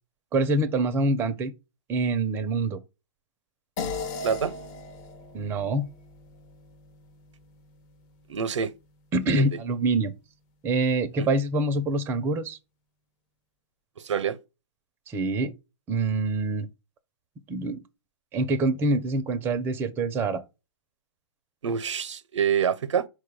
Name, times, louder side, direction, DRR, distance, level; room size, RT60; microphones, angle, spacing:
voice 1, 0.3-1.5 1.9-2.8 5.3-5.9 9.1-10.1 10.6-12.6 15.1-15.5 15.9-16.7 17.5-17.8 18.3-20.4, right 2 dB, 15° right, 0.5 m, -25 dB
sound 1, 3.8-8.5, left 3 dB, 35° left, 0.8 m, -38 dB
voice 2, 8.3-8.7 9.3-9.5 11.1-11.3 14.0-14.4 21.6-23.1, right 7 dB, 80° right, 0.6 m, -26 dB
4.6 x 2.2 x 4.6 m
hypercardioid pair, 135°, 15 cm